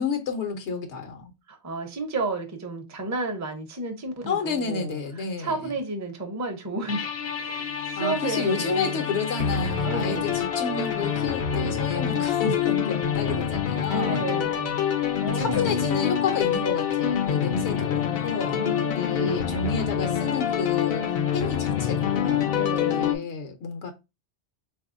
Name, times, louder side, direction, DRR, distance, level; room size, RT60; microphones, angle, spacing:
voice 1, 0.0-1.3 4.3-5.7 8.0-14.2 15.3-18.6 18.9-21.0 21.3-22.5 22.8-23.9, left 5 dB, 80° left, 1.0 m, -30 dB
voice 2, 1.5-5.0 5.4-7.1 7.4-9.1 9.9-10.4 13.9-14.8 15.2-15.8 18.5-19.6 22.5-23.3, right 3 dB, 20° right, 0.5 m, -32 dB
sound 1, 6.9-23.2, left 8 dB, 65° left, 0.7 m, -26 dB
4.0 x 2.6 x 2.5 m
omnidirectional pair, 1.2 m